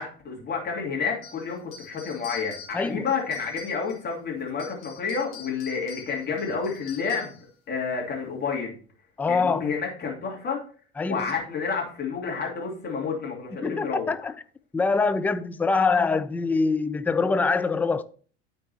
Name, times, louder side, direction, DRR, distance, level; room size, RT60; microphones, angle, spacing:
voice 1, 0.0-7.4 7.7-8.7 9.3-10.6 11.1-14.1, left 5 dB, 30° left, 2.8 m, -30 dB
sound 1, 1.2-4.1 4.5-7.5, left 6 dB, 55° left, 2.3 m, -46 dB
voice 2, 2.7-3.1 9.2-9.6 11.0-11.3 13.6-14.3 14.7-18.0, left 4 dB, 5° left, 0.3 m, -24 dB
12.5 x 4.5 x 2.9 m
figure-of-eight pair, 65°, 32 cm